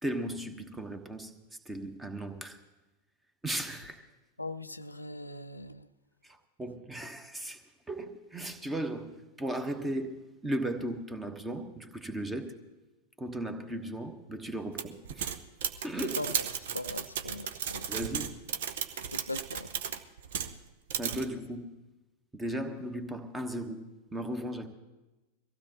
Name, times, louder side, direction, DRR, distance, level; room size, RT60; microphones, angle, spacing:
voice 1, 0.0-1.3 1.6-2.6 3.4-4.0 6.2-7.6 7.9-12.6 13.2-15.3 15.8-16.2 17.9-18.4 20.9-21.7 22.3-23.8 24.1-24.7, right 1 dB, 10° right, 1.2 m, -36 dB
voice 2, 4.4-5.8 16.0-16.4 16.7-17.8 19.1-19.7, left 2 dB, 85° left, 0.4 m, -39 dB
sound 1, 14.8-20.6 20.9-21.2, right 8 dB, 55° right, 0.8 m, -35 dB
23.0 x 15.5 x 3.0 m
figure-of-eight pair, 90°, 0 cm